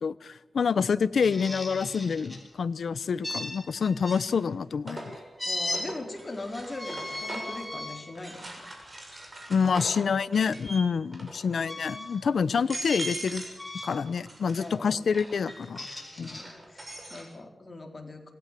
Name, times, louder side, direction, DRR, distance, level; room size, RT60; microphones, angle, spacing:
voice 1, 0.0-5.2 9.5-13.4 13.8-15.9 16.2-16.4, left 6 dB, 85° left, 16 dB, 0.9 m, -27 dB
sound 1, 1.2-2.4 3.2-4.2 5.4-5.8 6.7-8.0 8.6-8.8 10.6-10.8 11.6-12.2 12.9-13.2 13.6-14.1 15.5-16.4, left 1 dB, 10° left, 6.2 m, -36 dB
sound 2, 1.2-1.3 3.0-3.5 3.9-7.7 8.2-10.8 11.1-11.6 12.1-12.2 12.5-13.6 13.9-17.3, right 1 dB, 30° right, 6.7 m, -42 dB
voice 2, 5.4-8.7 12.3-12.5 14.6-15.0 16.2-18.3, left 2 dB, 30° left, 3 dB, 4.4 m, -41 dB
27.0 x 20.5 x 7.7 m, 1.1 s
wide cardioid pair, 120°, 0 cm